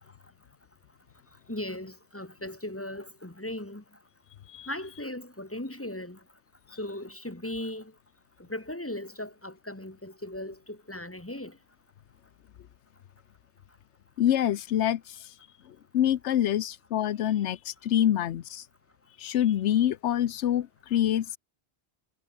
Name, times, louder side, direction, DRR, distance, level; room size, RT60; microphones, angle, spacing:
voice 1, 1.5-3.8 4.7-6.2 6.8-7.9 8.4-11.6, left 1 dB, 10° left, 1.6 m, -37 dB
voice 2, 14.2-15.3 15.7-18.6 19.2-21.4, left 11 dB, 90° left, 1.0 m, -26 dB
omnidirectional pair, 1.1 m